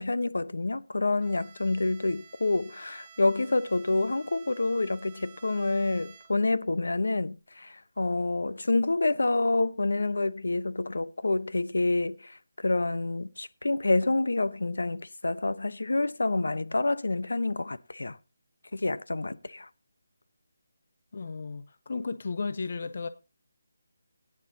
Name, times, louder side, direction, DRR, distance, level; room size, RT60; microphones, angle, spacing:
voice 1, 0.0-12.4 12.6-18.2 18.7-19.7, left 2 dB, 85° left, 0.9 m, -28 dB
Bowed string instrument, 1.2-6.6, right 6 dB, 20° right, 1.1 m, -53 dB
voice 2, 21.1-23.1, left 4 dB, 50° left, 0.7 m, -34 dB
17.0 x 9.8 x 2.8 m
figure-of-eight pair, 170°, 0 cm